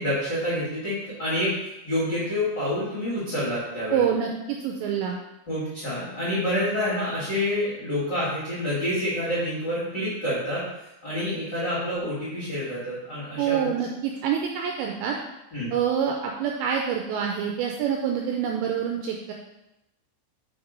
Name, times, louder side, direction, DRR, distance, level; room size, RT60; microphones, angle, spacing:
voice 1, 0.0-1.5 1.8-4.0 5.5-10.6 11.0-13.7 15.5-15.7, left 1 dB, 60° left, -9 dB, 1.1 m, -28 dB
voice 2, 3.9-5.2 13.4-15.2 15.7-19.3, right 8 dB, 85° right, 1 dB, 2.6 m, -26 dB
6.0 x 5.0 x 5.1 m, 0.92 s
omnidirectional pair, 5.6 m